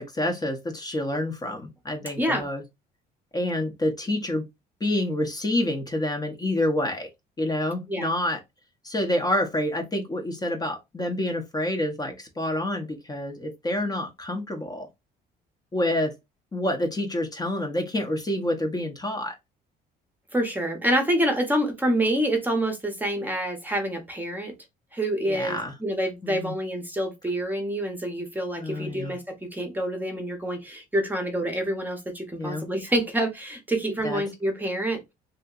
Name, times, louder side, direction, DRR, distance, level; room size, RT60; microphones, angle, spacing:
voice 1, 0.0-2.6 3.3-4.4 4.8-7.1 7.4-8.4 8.8-14.9 15.7-16.1 16.5-19.3 25.3-25.7 26.2-26.5 28.6-29.2 32.4-32.7 34.0-34.2, left 1 dB, 25° left, 0.7 m, -28 dB
voice 2, 20.3-24.5 24.9-35.0, right 1 dB, 10° right, 0.8 m, -27 dB
2.8 x 2.7 x 2.3 m
cardioid pair, 110°, 17 cm